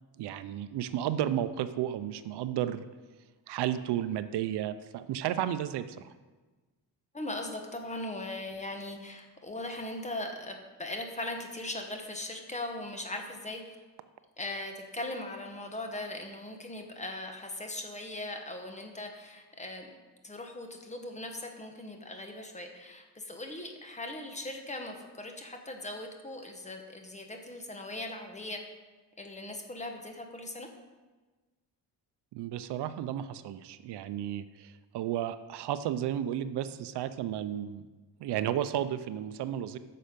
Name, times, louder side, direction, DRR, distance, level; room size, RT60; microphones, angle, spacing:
voice 1, 0.2-2.8 3.5-6.0 32.3-37.9 38.2-39.8, right 11 dB, 70° right, 12 dB, 0.6 m, -33 dB
voice 2, 7.1-13.8 14.4-19.9 20.2-28.6 29.2-30.7, left 2 dB, 15° left, 4 dB, 1.1 m, -39 dB
9.7 x 6.6 x 5.1 m, 1.3 s
cardioid pair, 130°, 41 cm